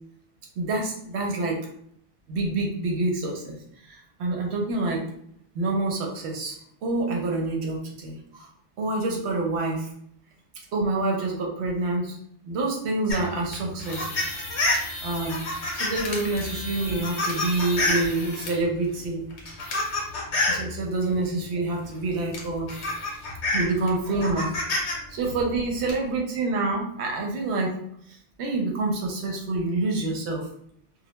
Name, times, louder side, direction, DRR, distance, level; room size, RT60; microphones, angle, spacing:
voice 1, 0.6-1.6 2.3-3.6 3.9-5.0 5.5-6.6 6.8-8.5 8.8-9.9 10.7-12.2 12.4-14.3 15.0-15.4 15.7-19.2 20.5-22.7 23.5-27.8 28.4-30.5, right 2 dB, 70° right, 0 dB, 0.8 m, -27 dB
sound 1, 13.1-18.6 19.3-20.7 21.9-22.0 22.3-24.9 25.2-25.9, left 2 dB, 70° left, 1.0 m, -28 dB
2.2 x 2.1 x 2.8 m, 0.68 s
omnidirectional pair, 1.2 m